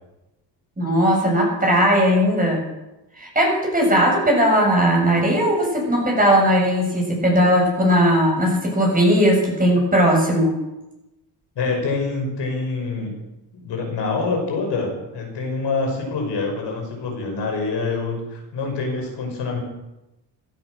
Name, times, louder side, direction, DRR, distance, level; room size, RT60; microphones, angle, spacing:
voice 1, 0.8-2.6 3.2-10.5, equal, 20° right, -1 dB, 7.2 m, -18 dB
voice 2, 11.6-13.2 13.5-19.6, left 3 dB, 65° left, 1 dB, 5.7 m, -26 dB
16.0 x 13.0 x 6.5 m, 0.98 s
cardioid pair, 105°, 44 cm